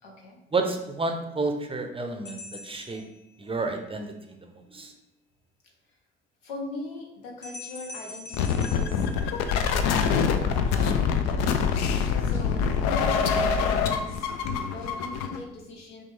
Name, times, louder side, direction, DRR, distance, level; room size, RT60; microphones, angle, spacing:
voice 1, 0.0-0.4 6.4-9.1 9.4-11.6 12.2-14.3 14.7-16.0, left 1 dB, 80° left, 0 dB, 0.8 m, -40 dB
voice 2, 0.5-3.0 3.4-4.9 11.9-12.1, right 3 dB, 20° right, 4 dB, 0.6 m, -31 dB
sound 1, 2.3-3.8 7.4-9.9, left 3 dB, 35° left, 0.8 m, -44 dB
sound 2, 8.3-15.4, left 6 dB, 60° left, 0.5 m, -25 dB
6.0 x 2.3 x 3.1 m, 0.87 s
figure-of-eight pair, 50°, 29 cm